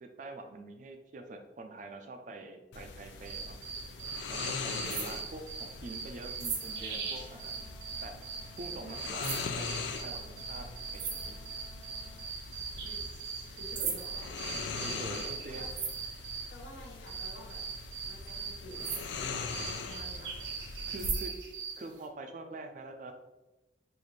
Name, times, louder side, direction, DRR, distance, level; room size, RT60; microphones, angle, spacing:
voice 1, 0.0-3.6 4.3-7.6 8.0-8.2 8.6-11.4 13.8-13.9 14.8-15.7 20.9-21.3 21.8-23.1, right 2 dB, 45° right, 5 dB, 0.3 m, -45 dB
sound 1, 2.7-21.1, left 4 dB, 80° left, 0.4 m, -41 dB
sound 2, 3.2-16.5 17.1-21.8, right 6 dB, 80° right, 0.7 m, -39 dB
voice 2, 4.8-5.2 12.8-14.3 15.5-15.7 16.5-17.6 18.1-19.5 19.8-20.8, left 1 dB, 65° left, -2 dB, 0.8 m, -51 dB
sound 3, 6.5-12.5, right 2 dB, 15° left, 1.0 m, -59 dB
4.0 x 2.5 x 3.1 m, 1.0 s
head